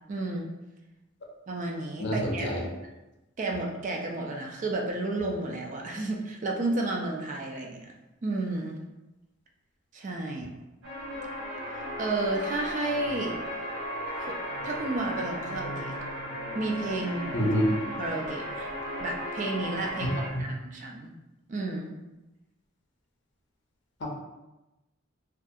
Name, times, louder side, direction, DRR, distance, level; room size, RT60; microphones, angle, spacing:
voice 1, 0.1-0.5 1.5-2.6 3.4-7.9 8.2-8.7 9.9-10.5 11.7-13.4 14.2-14.4 14.6-16.0 16.5-17.4 17.9-18.7 19.0-21.1 21.5-21.9, right 2 dB, 40° right, 0 dB, 0.3 m, -32 dB
voice 2, 2.0-2.7 17.3-17.6 20.3-20.4 24.0-24.1, equal, 60° left, -1 dB, 0.5 m, -27 dB
sound 1, 10.8-20.3, equal, 65° right, 0.7 m, -36 dB
2.3 x 2.3 x 2.6 m, 0.99 s
head